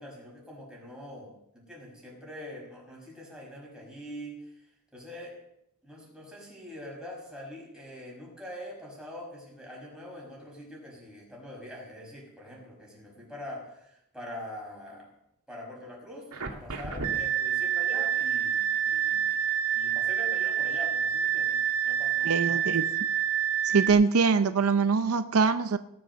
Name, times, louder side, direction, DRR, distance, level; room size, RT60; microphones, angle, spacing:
voice 1, 0.0-4.7 4.9-5.4 5.8-15.1 15.5-19.3 19.7-22.8, left 1 dB, 5° right, -3 dB, 5.5 m, -44 dB
sound 1, 16.3-23.9, right 9 dB, 90° right, 2.0 m, -27 dB
voice 2, 22.2-22.8 23.6-25.8, right 5 dB, 70° right, 11 dB, 0.5 m, -23 dB
18.5 x 7.7 x 6.7 m, 0.81 s
head